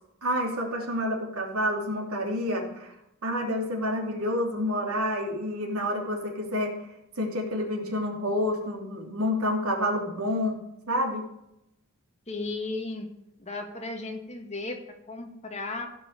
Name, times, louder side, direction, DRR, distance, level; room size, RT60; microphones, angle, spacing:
voice 1, 0.2-2.9 3.2-6.7 7.2-10.6 10.9-11.2, left 1 dB, 85° right, 0 dB, 3.0 m, -28 dB
voice 2, 12.3-13.1 13.4-15.9, left 2 dB, 30° left, 3 dB, 1.8 m, -35 dB
16.5 x 5.6 x 6.6 m, 0.84 s
head